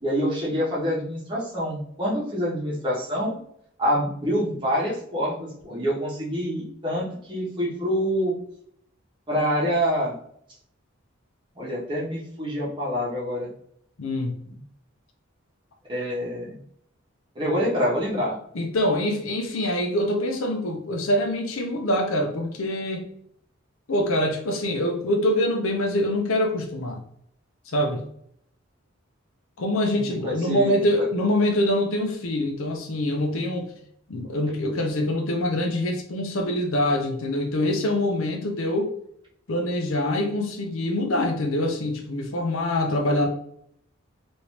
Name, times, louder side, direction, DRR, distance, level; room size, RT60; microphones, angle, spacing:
voice 1, 0.0-3.4 3.8-8.3 9.3-10.2 11.6-13.5 14.5-14.6 15.9-16.6 17.3-18.4 29.9-30.8, equal, 20° right, -6 dB, 0.9 m, -26 dB
voice 2, 14.0-14.4 18.5-23.1 23.9-27.0 27.7-28.0 29.6-33.7 34.1-38.9 39.5-43.3, left 1 dB, 75° left, 2 dB, 0.6 m, -25 dB
3.1 x 2.6 x 2.9 m, 0.68 s
head